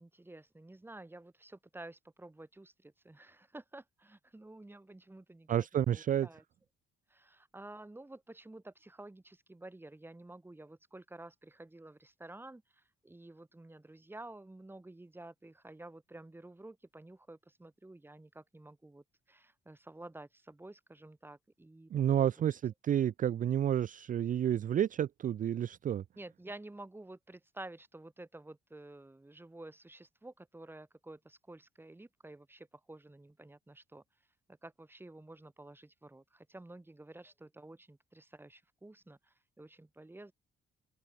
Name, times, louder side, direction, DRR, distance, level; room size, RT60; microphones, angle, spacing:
voice 1, 0.0-6.4 7.1-21.9 22.2-22.3 26.2-34.0 34.5-40.3, right 2 dB, 10° right, 1.6 m, -51 dB
voice 2, 5.5-6.3 21.9-26.0, right 10 dB, 40° right, 0.4 m, -30 dB
open air
cardioid pair, 90°, 20 cm